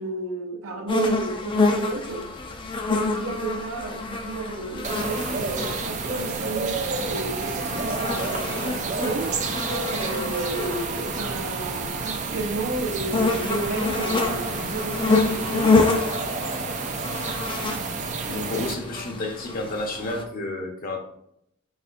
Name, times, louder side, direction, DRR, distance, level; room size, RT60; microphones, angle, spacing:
voice 1, 0.0-2.3 2.9-9.4 9.9-15.9, right 3 dB, 70° right, 0.8 m, -32 dB
sound 1, 0.9-20.2, left 3 dB, 25° left, 0.5 m, -28 dB
sound 2, 4.8-18.7, right 4 dB, 35° right, 0.4 m, -30 dB
voice 2, 18.2-21.0, left 2 dB, 45° left, 0.8 m, -31 dB
4.3 x 4.1 x 2.5 m
head